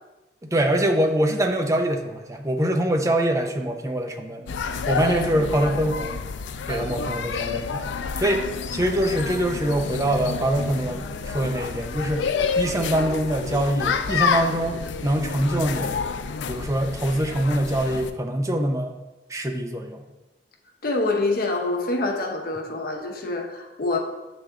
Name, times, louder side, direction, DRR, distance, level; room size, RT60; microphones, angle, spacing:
voice 1, 0.4-4.6 4.9-6.2 6.7-7.8 8.2-8.5 8.7-12.2 12.6-16.0 16.5-18.9 19.3-20.0, right 1 dB, 20° right, 4 dB, 0.5 m, -24 dB
sound 1, 4.5-18.1, left 5 dB, 90° left, 0.4 m, -29 dB
voice 2, 6.7-7.1 20.8-24.0, left 2 dB, 55° left, 1 dB, 0.8 m, -26 dB
8.0 x 3.4 x 3.6 m, 1.1 s
head